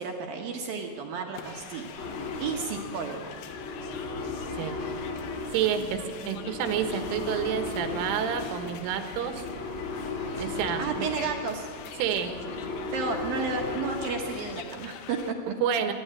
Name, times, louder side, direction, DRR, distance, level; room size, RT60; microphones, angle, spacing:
voice 1, 0.0-1.9 2.4-3.3 5.8-5.9 10.8-11.7 12.9-15.5, right 5 dB, 65° right, 1 dB, 2.4 m, -32 dB
sound 1, 1.3-15.3, left 8 dB, 80° left, 2.1 m, -45 dB
sound 2, 2.0-14.5, left 3 dB, 60° left, 0.7 m, -36 dB
voice 2, 5.5-9.4 10.4-11.1 12.0-12.4 15.6-15.9, right 8 dB, 85° right, 6 dB, 3.9 m, -29 dB
27.5 x 12.0 x 9.0 m, 2.1 s
omnidirectional pair, 5.6 m